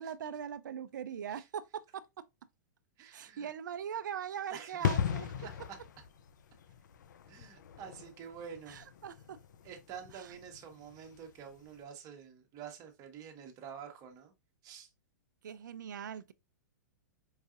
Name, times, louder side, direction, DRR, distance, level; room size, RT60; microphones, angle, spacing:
voice 1, 0.0-2.0 3.1-5.3 8.7-9.4 10.1-10.3 15.4-16.3, right 8 dB, 80° right, 0.4 m, -41 dB
voice 2, 3.0-3.5 4.5-5.0 5.4-5.8 7.3-8.8 9.6-14.3 14.6-14.9, right 7 dB, 35° right, 1.0 m, -48 dB
sound 1, 4.8-11.3 11.6-11.8, left 8 dB, 75° left, 0.4 m, -38 dB
4.7 x 2.6 x 2.4 m
hypercardioid pair, 120°, 10 cm